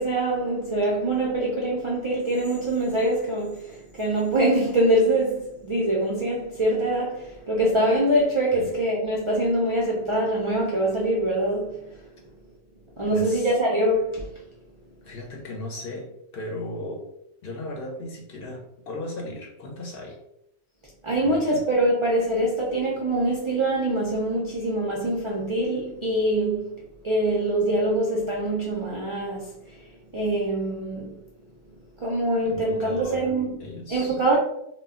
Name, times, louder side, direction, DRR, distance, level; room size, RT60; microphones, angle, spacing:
voice 1, 0.0-12.0 13.0-14.3 21.0-26.8 27.0-31.2 32.0-33.6 33.9-34.4, right 1 dB, 50° right, 0.3 m, -24 dB
voice 2, 13.1-13.5 15.0-16.1 16.3-17.0 17.4-20.2 21.2-21.6 32.4-33.3 33.6-34.2, left 1 dB, 60° left, 0.7 m, -36 dB
2.2 x 2.1 x 3.5 m
omnidirectional pair, 1.2 m